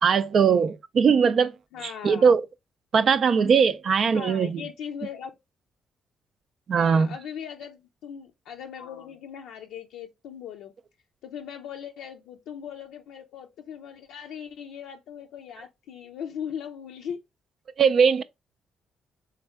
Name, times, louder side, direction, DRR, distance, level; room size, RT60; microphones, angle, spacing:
voice 1, 0.0-1.5 1.8-2.5 2.9-4.6 6.7-7.1 17.8-18.2, right 6 dB, 55° right, 0.4 m, -20 dB
voice 2, 1.7-2.4 4.1-5.3 6.7-10.7 11.2-17.2, left 8 dB, 85° left, 0.5 m, -39 dB
3.5 x 3.2 x 3.4 m
cardioid pair, 75°, 0 cm